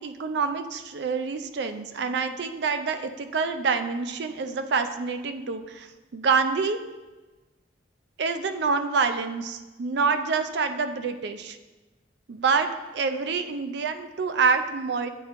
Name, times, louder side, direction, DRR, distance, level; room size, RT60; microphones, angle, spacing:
voice 1, 0.0-6.8 8.2-11.6 12.3-12.7 12.9-15.1, right 5 dB, 65° right, 9 dB, 0.4 m, -27 dB
9.0 x 4.3 x 2.6 m, 1.2 s
head